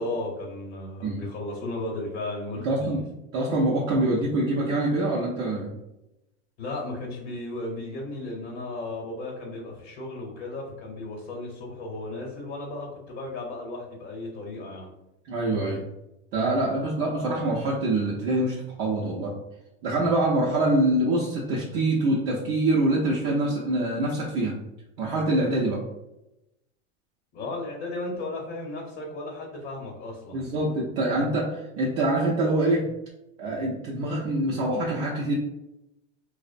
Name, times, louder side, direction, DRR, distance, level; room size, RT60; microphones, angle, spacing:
voice 1, 0.0-3.0 6.6-14.9 27.3-30.6, left 2 dB, 45° left, -1 dB, 0.8 m, -35 dB
voice 2, 2.6-3.0 3.3-5.7 15.2-15.9 16.3-19.4 19.8-24.5 25.0-25.8 30.3-32.9 33.4-35.3, right 2 dB, 40° right, -3 dB, 0.5 m, -25 dB
2.4 x 2.0 x 2.4 m, 0.92 s
hypercardioid pair, 115°, 35 cm